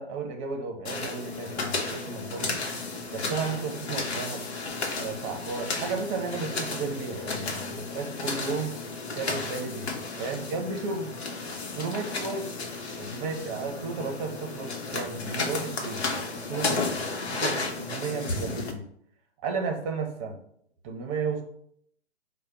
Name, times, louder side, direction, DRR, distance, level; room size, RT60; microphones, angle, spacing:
voice 1, 0.0-2.6 3.1-4.5 5.0-8.8 9.1-9.9 10.2-11.1 11.6-12.5 13.0-18.8 19.4-20.4 20.8-21.4, right 4 dB, 25° right, 3 dB, 0.8 m, -33 dB
sound 1, 0.8-18.7, left 3 dB, 65° left, 1.0 m, -33 dB
4.9 x 2.2 x 4.3 m, 0.66 s
figure-of-eight pair, 125°, 36 cm